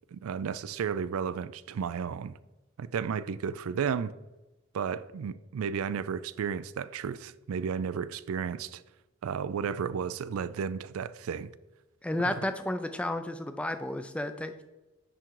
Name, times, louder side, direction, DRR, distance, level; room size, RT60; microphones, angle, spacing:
voice 1, 0.1-2.4 2.8-4.1 4.7-8.8 9.2-11.5 12.2-12.4, right 6 dB, 85° right, 0.4 m, -33 dB
voice 2, 12.0-14.6, left 1 dB, 5° left, 0.4 m, -32 dB
10.0 x 3.8 x 4.6 m
head